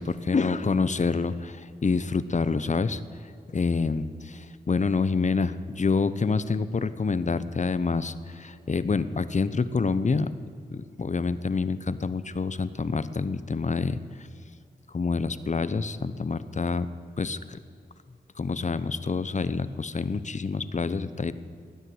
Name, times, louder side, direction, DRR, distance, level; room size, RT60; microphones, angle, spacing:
voice 1, 0.0-10.3 10.7-14.3 14.9-16.9 17.2-17.6 18.4-21.3, left 4 dB, 45° left, 14 dB, 0.9 m, -27 dB
18.0 x 9.9 x 8.0 m, 2.3 s
cardioid pair, 45°, 17 cm